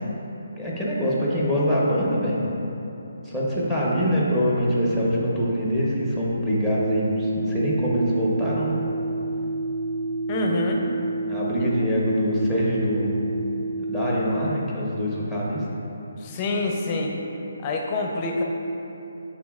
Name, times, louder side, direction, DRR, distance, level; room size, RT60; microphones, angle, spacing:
voice 1, 0.6-2.4 3.3-8.8 11.3-13.1 13.8-15.6, equal, 5° right, -6 dB, 0.9 m, -24 dB
sound 1, 6.4-14.5, right 2 dB, 75° right, 0.7 m, -29 dB
voice 2, 10.3-10.8 16.2-17.1 17.6-18.4, left 2 dB, 20° left, 0 dB, 0.6 m, -26 dB
11.0 x 3.8 x 2.4 m, 3.0 s
hypercardioid pair, 165°, 0 cm